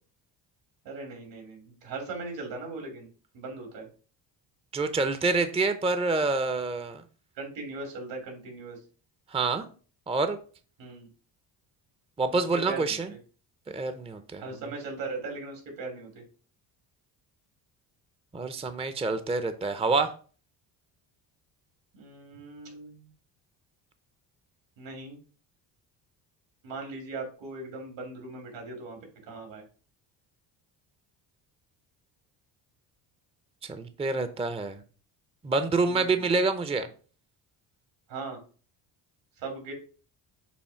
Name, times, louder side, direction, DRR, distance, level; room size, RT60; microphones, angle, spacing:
voice 1, 0.8-3.1 3.3-3.9 7.4-8.8 10.8-11.1 12.3-13.2 14.4-16.2 21.9-23.1 24.8-25.2 26.6-29.0 29.3-29.6 35.8-36.3 38.1-38.4 39.4-39.7, right 3 dB, 75° right, 2 dB, 2.8 m, -39 dB
voice 2, 4.7-7.0 9.3-9.6 10.1-10.4 12.2-13.1 13.7-14.4 18.3-20.1 33.7-34.8 35.4-36.9, right 3 dB, 15° right, 10 dB, 0.6 m, -27 dB
7.0 x 2.7 x 5.7 m, 0.39 s
cardioid pair, 90°, 45 cm